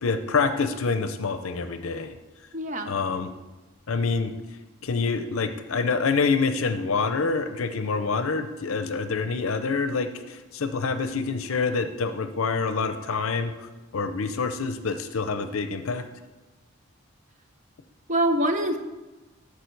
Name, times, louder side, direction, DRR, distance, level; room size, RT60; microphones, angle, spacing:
voice 1, 0.0-2.1 2.9-3.3 3.9-4.3 4.8-16.0, left 4 dB, 80° left, 9 dB, 0.5 m, -26 dB
voice 2, 2.5-3.0 18.1-18.8, right 1 dB, 35° right, 7 dB, 0.7 m, -24 dB
13.5 x 4.9 x 4.5 m, 1.2 s
head